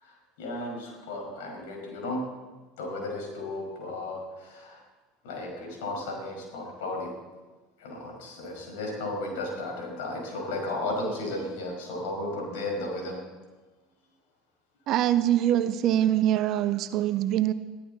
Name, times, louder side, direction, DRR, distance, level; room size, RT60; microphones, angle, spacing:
voice 1, 0.0-2.2 2.8-4.8 5.2-7.1 7.8-13.2, left 2 dB, 60° left, 1 dB, 5.2 m, -34 dB
voice 2, 14.9-17.5, right 12 dB, 45° right, 13 dB, 0.8 m, -24 dB
21.5 x 14.0 x 4.1 m, 1.2 s
figure-of-eight pair, 70°, 0 cm